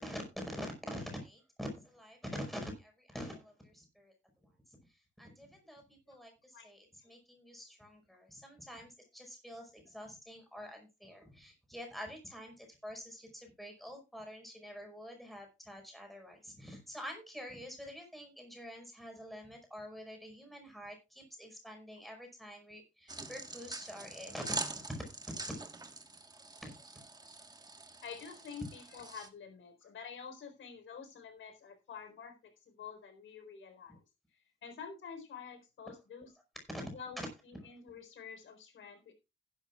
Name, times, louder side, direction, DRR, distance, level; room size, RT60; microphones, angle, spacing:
voice 1, 0.0-4.1 4.4-4.5 4.9-25.0 25.5-25.6 26.3-27.0 36.7-36.9 37.2-37.3, equal, ahead, 3 dB, 5.2 m, -46 dB
sound 1, 23.1-29.3, right 3 dB, 20° right, 1.5 m, -44 dB
voice 2, 28.0-34.0 34.3-36.3 36.9-39.1, left 6 dB, 90° left, 7 dB, 4.3 m, -48 dB
15.5 x 11.5 x 2.4 m, 0.26 s
wide cardioid pair, 140°, 19 cm